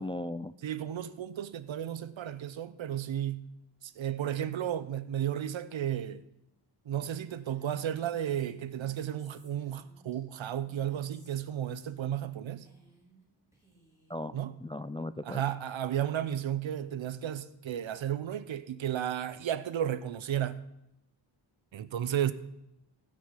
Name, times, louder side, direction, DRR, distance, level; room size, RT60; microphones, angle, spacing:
voice 1, 0.0-0.5 14.1-15.4, left 1 dB, 15° left, 0.3 m, -37 dB
voice 2, 0.6-3.5 3.8-6.2 6.9-12.7 14.3-14.5 15.2-20.6 21.7-22.3, right 10 dB, 80° right, 0.8 m, -33 dB
Female speech woman speaking, 6.9-11.5 11.8-12.3 12.6-13.2 13.5-14.2, right 3 dB, 5° right, 4.9 m, -61 dB
16.0 x 6.4 x 5.7 m
cardioid pair, 80°, 46 cm